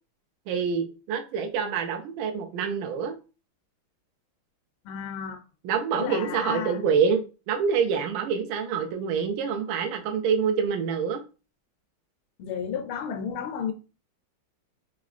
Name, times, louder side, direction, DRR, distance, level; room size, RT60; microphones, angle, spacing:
voice 1, 0.5-3.2 5.6-11.2, right 6 dB, 75° right, 1.3 m, -26 dB
voice 2, 4.8-5.4 5.9-6.8 12.4-13.7, left 7 dB, 80° left, 1.4 m, -32 dB
3.9 x 3.0 x 2.4 m
omnidirectional pair, 2.3 m